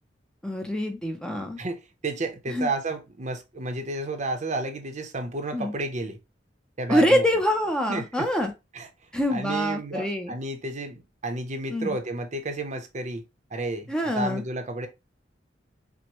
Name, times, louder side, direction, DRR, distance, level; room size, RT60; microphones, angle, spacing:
voice 1, 0.4-1.6 2.5-2.7 5.5-5.7 6.9-8.5 9.1-10.3 11.7-12.0 13.9-14.4, equal, 5° left, 0.5 m, -25 dB
voice 2, 1.6-6.2 6.8-7.3 7.9-8.3 8.7-8.9 9.3-13.2 13.5-14.9, right 2 dB, 40° right, 0.7 m, -31 dB
6.1 x 2.1 x 2.9 m
head